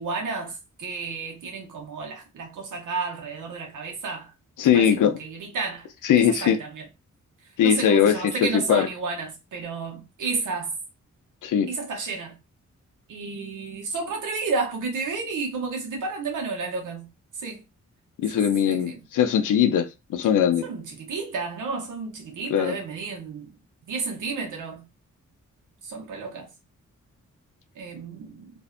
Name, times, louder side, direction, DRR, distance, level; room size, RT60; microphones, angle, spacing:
voice 1, 0.0-4.3 4.6-5.9 6.1-6.9 7.6-10.7 11.7-12.4 13.1-17.1 17.3-17.6 18.3-19.0 20.6-23.6 23.9-24.9 25.8-26.5 27.7-28.5, right 4 dB, 85° right, 0.8 m, -32 dB
voice 2, 4.6-5.1 6.0-6.6 7.6-8.9 11.4-11.7 18.2-20.6 22.5-22.8, left 9 dB, 85° left, 0.5 m, -20 dB
2.5 x 2.1 x 2.5 m
cardioid pair, 75°, 30 cm